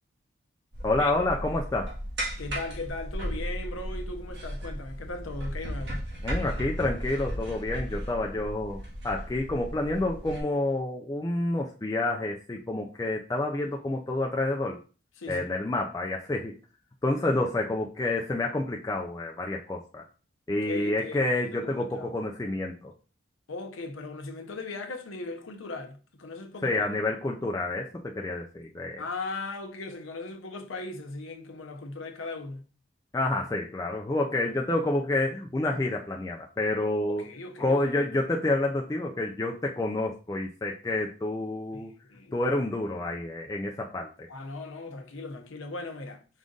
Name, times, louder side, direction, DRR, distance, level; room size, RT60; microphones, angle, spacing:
sound 1, 0.7-10.4, equal, 60° right, 1.6 m, -35 dB
voice 1, 0.8-1.9 6.2-14.8 15.3-16.5 17.0-20.0 20.5-22.9 26.6-29.0 33.1-37.2 37.6-41.9 42.3-44.3, left 2 dB, 15° left, 0.3 m, -29 dB
voice 2, 2.4-6.1 15.2-15.5 20.6-22.2 23.5-26.8 29.0-32.7 37.1-38.0 41.7-42.3 44.3-46.4, left 3 dB, 90° left, 0.8 m, -38 dB
5.0 x 2.5 x 3.8 m
head